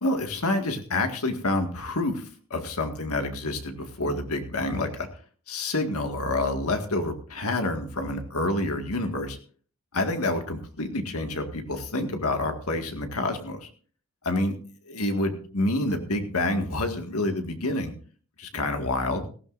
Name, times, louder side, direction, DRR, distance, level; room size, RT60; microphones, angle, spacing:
voice 1, 0.0-5.1 5.5-9.4 9.9-13.7 14.2-14.6 14.9-17.9 18.4-19.2, left 2 dB, 85° left, 5 dB, 2.0 m, -28 dB
18.0 x 15.5 x 2.6 m, 0.43 s
head